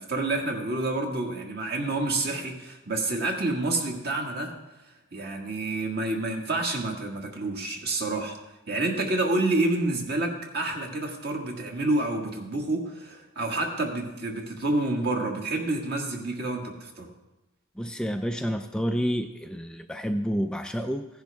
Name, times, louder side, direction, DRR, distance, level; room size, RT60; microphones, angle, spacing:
voice 1, 0.0-4.5 5.1-8.4 8.7-17.1, right 2 dB, 50° right, 2 dB, 1.8 m, -28 dB
voice 2, 17.8-21.1, equal, 5° left, 6 dB, 0.3 m, -29 dB
15.5 x 10.5 x 3.5 m, 1.0 s
head